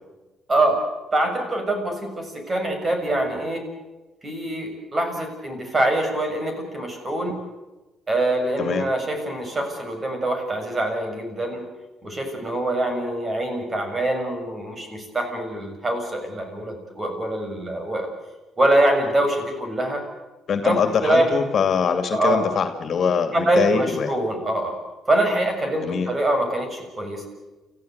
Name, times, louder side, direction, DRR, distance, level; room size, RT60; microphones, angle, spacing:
voice 1, 1.1-3.6 4.2-7.4 8.1-11.6 12.0-18.1 18.6-20.0 20.6-20.8 21.0-21.4 22.1-22.4 23.3-24.8 25.1-27.3, right 1 dB, 30° right, 4 dB, 6.8 m, -24 dB
voice 2, 20.5-24.2 25.8-26.1, left 6 dB, 55° left, 8 dB, 2.5 m, -23 dB
29.5 x 15.0 x 8.1 m, 1.1 s
cardioid pair, 100°, 0 cm